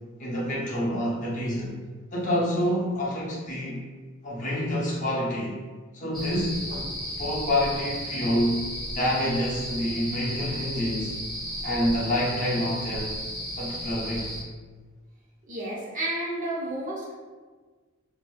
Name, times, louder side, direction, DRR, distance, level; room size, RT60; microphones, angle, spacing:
voice 1, 0.2-1.7 2.1-3.8 4.2-5.6 5.9-6.9 7.2-8.7 8.9-11.1 11.6-13.2 13.6-14.4, equal, 40° left, -5 dB, 0.7 m, -27 dB
sound 1, 6.1-14.4, equal, ahead, 0.6 m, -34 dB
voice 2, 15.5-17.1, right 1 dB, 40° right, -5 dB, 0.6 m, -31 dB
4.2 x 2.0 x 2.2 m, 1.4 s
head